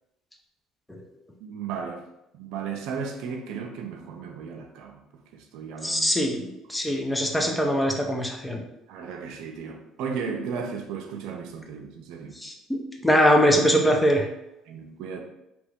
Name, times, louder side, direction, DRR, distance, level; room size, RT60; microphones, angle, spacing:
voice 1, 1.4-2.1 2.3-5.0 5.3-6.1 8.9-12.3 14.7-15.2, right 6 dB, 80° right, 3 dB, 0.5 m, -35 dB
voice 2, 5.8-8.6 12.4-14.3, equal, 10° left, 1 dB, 0.6 m, -22 dB
2.9 x 2.6 x 3.5 m, 0.89 s
supercardioid pair, 85°, 0 cm